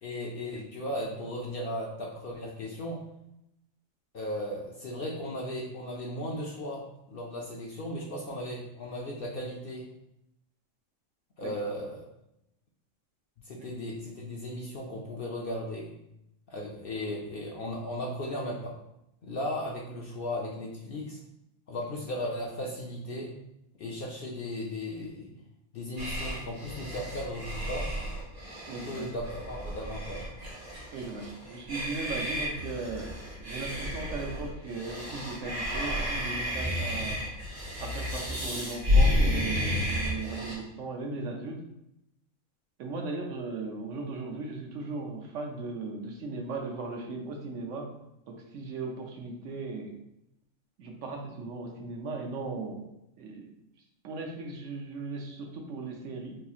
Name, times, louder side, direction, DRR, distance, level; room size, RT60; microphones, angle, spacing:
voice 1, 0.0-3.0 4.1-9.9 11.4-12.0 13.4-15.9 16.5-18.8 19.2-21.2 21.7-23.3 23.8-25.3 25.7-27.9 28.9-30.2, left 1 dB, 60° left, -1 dB, 0.6 m, -36 dB
sound 1, 26.0-40.6, left 1 dB, 20° right, 1.2 m, -31 dB
voice 2, 28.7-29.1 30.9-37.2 37.8-41.6 42.8-47.9 48.3-49.9 50.8-52.8 53.2-53.6 54.0-56.4, right 3 dB, 75° right, 1 dB, 1.0 m, -37 dB
3.9 x 2.7 x 2.4 m, 0.82 s
omnidirectional pair, 1.3 m